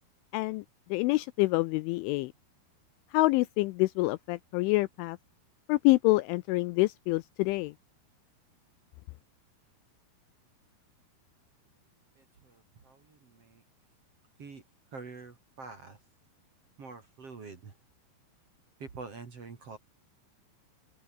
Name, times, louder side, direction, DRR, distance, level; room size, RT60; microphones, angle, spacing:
voice 1, 0.3-0.6 0.9-2.3 3.1-5.2 5.7-7.7, left 21 dB, 85° left, 2.8 m, -26 dB
voice 2, 12.2-13.6 14.4-14.6 14.9-16.0 16.8-17.7 18.8-19.8, right 4 dB, 35° right, 3.0 m, -46 dB
open air
omnidirectional pair, 5.9 m